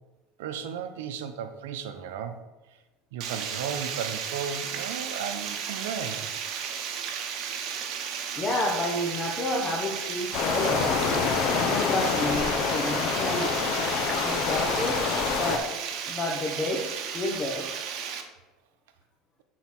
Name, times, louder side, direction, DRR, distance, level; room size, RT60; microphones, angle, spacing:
voice 1, 0.4-2.4 3.1-6.3, right 7 dB, 85° right, 8 dB, 0.7 m, -35 dB
Water, 3.2-18.2, right 7 dB, 60° right, 0.9 m, -34 dB
voice 2, 8.4-10.9 11.5-13.5 14.2-15.0 15.4-15.6 16.1-17.7, left 2 dB, 30° left, -2 dB, 1.3 m, -30 dB
sound 1, 10.3-15.6, left 5 dB, 55° left, 0.9 m, -26 dB
8.1 x 4.2 x 4.5 m, 1.1 s
supercardioid pair, 105°, 0 cm